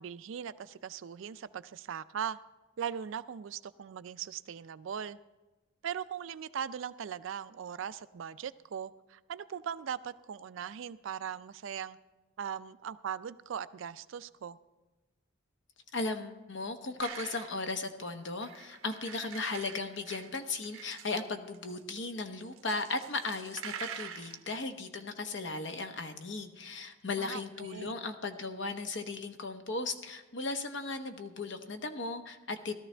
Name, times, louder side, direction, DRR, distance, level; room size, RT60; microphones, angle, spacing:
voice 1, 0.0-2.4 2.8-5.2 5.8-12.0 12.4-14.6 27.2-27.9, right 8 dB, 65° right, 15 dB, 0.3 m, -39 dB
voice 2, 15.9-32.7, left 3 dB, 60° left, 7 dB, 0.9 m, -36 dB
sound 1, 17.0-17.7 18.4-21.2 21.5-22.0 22.6-24.6, right 8 dB, 80° right, 0.8 m, -45 dB
17.5 x 13.0 x 3.3 m, 1.2 s
head